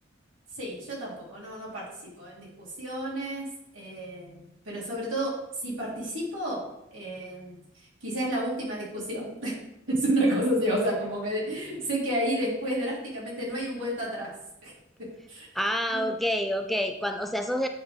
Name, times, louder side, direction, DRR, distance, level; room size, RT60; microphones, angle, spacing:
voice 1, 0.6-3.5 3.7-6.6 6.9-7.6 8.0-9.6 9.9-14.3 14.6-14.7 15.3-15.5 15.9-16.1, right 1 dB, 90° right, -5 dB, 3.2 m, -30 dB
voice 2, 15.5-17.7, equal, ahead, 4 dB, 0.4 m, -28 dB
8.6 x 5.6 x 3.6 m, 0.87 s
head